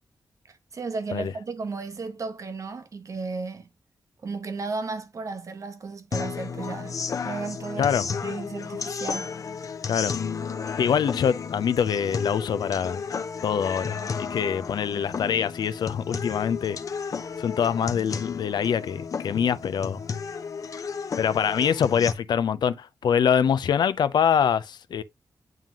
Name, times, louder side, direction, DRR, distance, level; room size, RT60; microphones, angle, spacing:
voice 1, 0.5-3.7 4.2-7.0 7.2-9.3 14.9-15.1, right 4 dB, 50° right, 0.9 m, -34 dB
sound 1, 6.1-22.1, left 6 dB, 50° left, 0.7 m, -33 dB
voice 2, 9.9-10.2 10.8-13.0 13.4-14.0 14.3-17.0 17.4-20.0 21.2-25.0, left 8 dB, 90° left, 0.5 m, -24 dB
9.1 x 3.7 x 2.9 m
wide cardioid pair, 145°, 7 cm